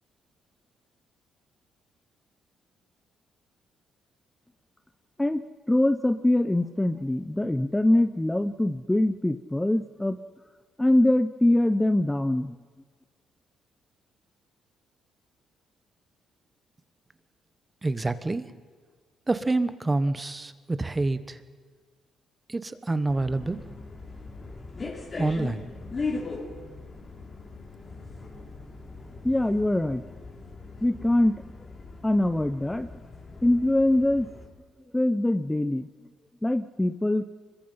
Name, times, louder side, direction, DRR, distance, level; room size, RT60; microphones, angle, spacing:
voice 1, 5.7-10.2 10.8-12.6 29.2-30.0 30.8-31.4 32.0-32.9 33.4-34.3 34.9-35.9 36.4-37.2, left 1 dB, 10° left, 11 dB, 0.7 m, -23 dB
voice 2, 17.8-18.5 19.3-21.4 22.5-23.6 25.2-25.6, right 2 dB, 20° right, 13 dB, 1.2 m, -27 dB
sound 1, 23.1-34.5, left 3 dB, 35° left, 3.3 m, -39 dB
25.5 x 22.0 x 5.7 m, 1.5 s
cardioid pair, 90°, 0 cm